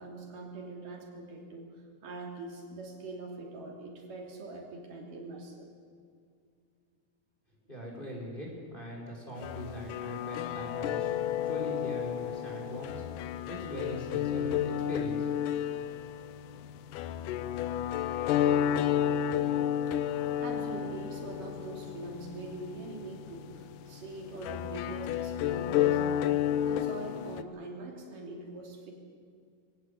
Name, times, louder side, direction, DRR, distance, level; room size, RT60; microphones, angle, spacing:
voice 1, 0.0-1.7 2.0-5.7 19.9-26.3 26.6-28.9, right 2 dB, 70° right, 0 dB, 4.4 m, -43 dB
voice 2, 7.7-15.3, equal, 15° left, -1 dB, 4.3 m, -41 dB
sound 1, 9.4-27.4, left 10 dB, 75° left, 2.1 m, -31 dB
23.0 x 17.5 x 8.1 m, 2.3 s
omnidirectional pair, 3.9 m